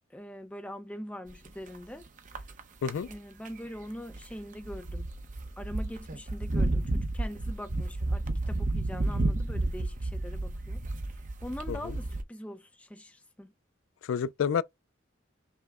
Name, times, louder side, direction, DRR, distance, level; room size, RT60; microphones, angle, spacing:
voice 1, 0.1-2.0 3.0-5.1 5.6-10.8 11.4-13.5, equal, 5° left, 0.5 m, -42 dB
sound 1, 1.3-1.8 2.2-2.6 2.9-3.1 3.4-3.5 4.1-4.3 4.6-12.2, right 2 dB, 40° right, 0.7 m, -31 dB
voice 2, 14.1-14.6, left 7 dB, 75° left, 0.3 m, -29 dB
5.6 x 2.1 x 3.5 m
head